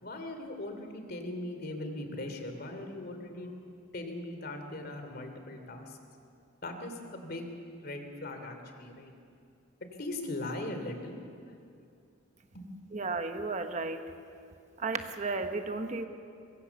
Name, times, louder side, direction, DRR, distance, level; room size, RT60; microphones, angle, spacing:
voice 1, 0.0-3.5 3.9-6.0 6.6-7.5 7.8-9.1 10.0-11.2 12.5-12.7, left 1 dB, 50° left, 6 dB, 2.9 m, -39 dB
voice 2, 12.9-14.0 14.8-16.1, right 3 dB, 35° right, 7 dB, 1.1 m, -33 dB
24.0 x 23.0 x 7.1 m, 2.4 s
head